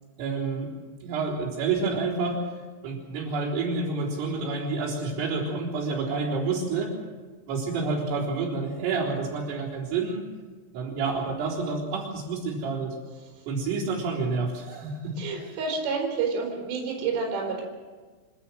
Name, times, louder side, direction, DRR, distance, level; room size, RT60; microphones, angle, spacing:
voice 1, 0.2-0.7 1.0-2.4 2.8-7.0 7.5-10.3 10.7-12.9 13.5-15.1, right 4 dB, 80° right, -6 dB, 6.4 m, -29 dB
voice 2, 15.2-17.6, right 5 dB, 60° right, -1 dB, 6.1 m, -29 dB
27.5 x 12.5 x 7.7 m, 1.4 s
omnidirectional pair, 5.8 m